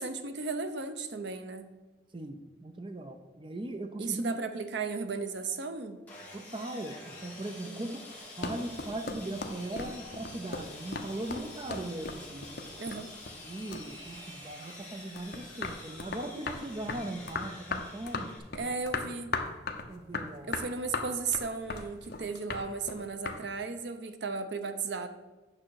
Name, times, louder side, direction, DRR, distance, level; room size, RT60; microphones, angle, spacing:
voice 1, 0.0-1.7 4.0-6.0 7.6-8.0 12.8-13.1 18.5-19.4 20.4-25.1, right 4 dB, 65° right, 9 dB, 0.7 m, -35 dB
voice 2, 2.1-4.3 6.3-8.0 8.4-12.5 13.4-18.3 19.9-20.5, right 1 dB, 25° right, 6 dB, 0.5 m, -39 dB
Sawing, 6.1-18.4, left 1 dB, 10° left, 2.1 m, -48 dB
sound 1, 8.1-13.5 13.7-14.8 15.2-23.4, left 4 dB, 55° left, 0.8 m, -37 dB
8.8 x 6.2 x 4.6 m, 1.2 s
head